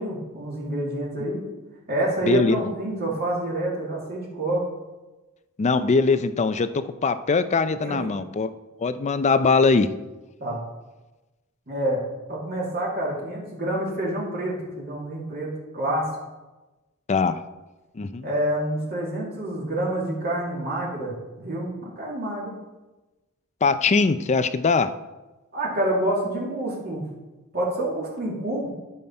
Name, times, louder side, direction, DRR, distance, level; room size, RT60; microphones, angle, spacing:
voice 1, 0.0-1.4 1.9-4.6 7.8-8.2 10.4-10.6 11.7-12.0 12.3-16.1 18.2-22.5 25.5-27.0 27.5-28.7, right 1 dB, 45° right, -5 dB, 2.2 m, -27 dB
voice 2, 2.2-2.6 5.6-8.5 8.8-9.9 17.1-17.4 18.0-18.3 23.6-24.9, left 4 dB, 30° left, 12 dB, 0.4 m, -21 dB
12.0 x 5.7 x 4.3 m, 1.1 s
head